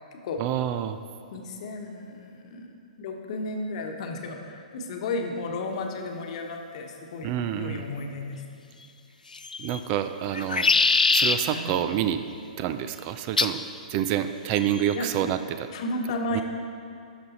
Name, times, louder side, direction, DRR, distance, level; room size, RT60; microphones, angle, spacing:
voice 1, 0.4-1.0 7.2-7.8 9.6-10.7 11.1-12.2 12.6-13.6 13.9-15.7 16.3-16.4, right 10 dB, 35° right, 10 dB, 0.4 m, -28 dB
voice 2, 1.3-8.4 11.5-11.8 14.9-15.1 15.7-16.4, left 2 dB, 50° left, 3 dB, 1.1 m, -33 dB
sound 1, 9.3-9.8 10.3-11.4 13.4-13.6 14.6-15.0, left 4 dB, 90° left, 0.4 m, -22 dB
11.0 x 6.2 x 4.1 m, 2.5 s
figure-of-eight pair, 120°, 4 cm